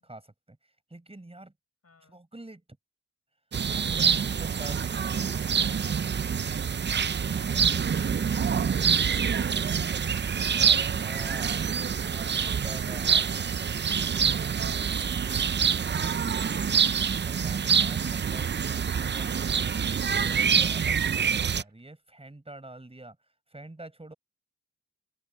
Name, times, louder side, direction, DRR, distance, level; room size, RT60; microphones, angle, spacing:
voice 1, 0.0-1.5 2.1-2.6 3.6-5.6 10.6-11.7 12.0-13.2 17.2-18.5 18.9-23.2 23.5-24.1, right 2 dB, 20° right, 4.9 m, -46 dB
voice 2, 1.8-2.2 4.2-5.0 7.0-11.7 12.3-12.6 15.0-18.2, left 4 dB, 50° left, 7.5 m, -59 dB
sound 1, 3.5-21.6, right 7 dB, 35° right, 0.5 m, -26 dB
sound 2, 10.2-11.1 11.4-11.5 12.1-12.5 12.9-13.0 13.5-13.6 13.9-14.9 16.0-16.1 16.7-16.8 17.7-18.5 20.3-20.5 20.9-21.8, right 6 dB, 55° right, 1.9 m, -51 dB
open air
cardioid pair, 75°, 32 cm